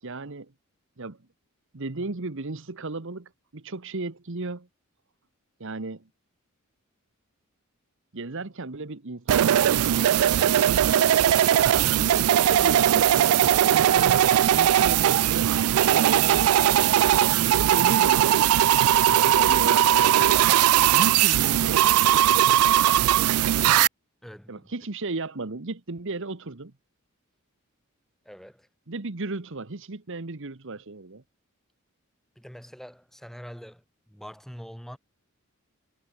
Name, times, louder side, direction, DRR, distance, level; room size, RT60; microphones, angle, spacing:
voice 1, 0.0-0.5 1.0-1.2 1.7-4.7 5.6-6.1 8.1-10.9 11.9-13.3 13.6-16.9 17.3-18.3 19.4-20.3 20.8-22.4 24.5-26.7 28.9-31.2, right 3 dB, 65° right, 1.2 m, -35 dB
sound 1, 9.3-23.9, right 11 dB, 85° right, 0.3 m, -19 dB
voice 2, 11.7-12.1 19.1-19.4 24.2-24.7 28.2-28.7 32.4-35.0, equal, ahead, 7.3 m, -44 dB
head